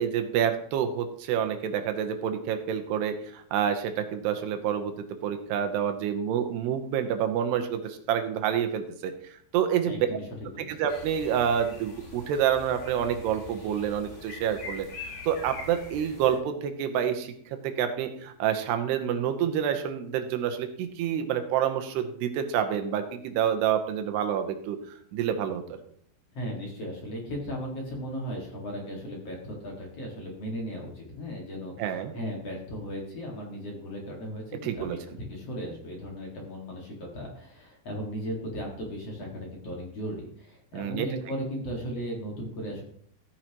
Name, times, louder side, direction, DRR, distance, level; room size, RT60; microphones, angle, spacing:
voice 1, 0.0-9.1 9.5-9.9 10.7-14.9 15.3-17.3 17.6-24.8 25.1-25.6 31.8-32.1 34.6-35.0 40.7-41.1, right 9 dB, 85° right, 7 dB, 3.0 m, -28 dB
voice 2, 9.8-10.7 26.3-42.8, equal, 45° left, -1 dB, 2.5 m, -36 dB
sound 1, 10.9-16.4, left 4 dB, 75° left, 5.1 m, -43 dB
14.5 x 9.5 x 3.0 m, 0.62 s
omnidirectional pair, 4.8 m